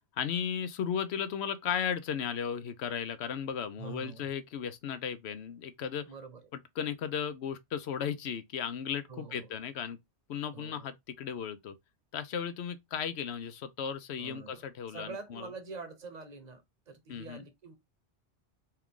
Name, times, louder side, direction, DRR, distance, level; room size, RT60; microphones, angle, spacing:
voice 1, 0.1-6.1 6.5-10.0 10.3-11.8 12.1-15.5 17.1-17.4, left 8 dB, 75° left, 0.9 m, -35 dB
voice 2, 3.8-4.3 6.0-6.4 9.1-9.5 10.5-10.9 14.2-17.8, right 4 dB, 40° right, 1.0 m, -45 dB
4.4 x 2.4 x 3.6 m
omnidirectional pair, 1.1 m